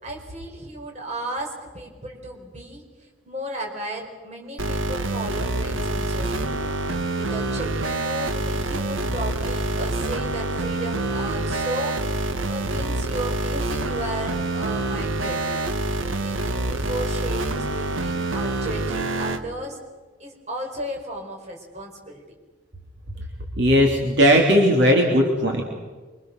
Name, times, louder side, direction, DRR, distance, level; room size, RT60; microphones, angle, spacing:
voice 1, 0.0-6.7 7.1-15.7 16.2-19.8 20.2-22.2, right 1 dB, 35° right, 1 dB, 4.9 m, -34 dB
sound 1, 4.6-19.4, right 2 dB, 90° right, 1.5 m, -26 dB
voice 2, 23.6-25.6, equal, 60° right, 0 dB, 3.3 m, -17 dB
25.5 x 25.0 x 6.7 m, 1.3 s
head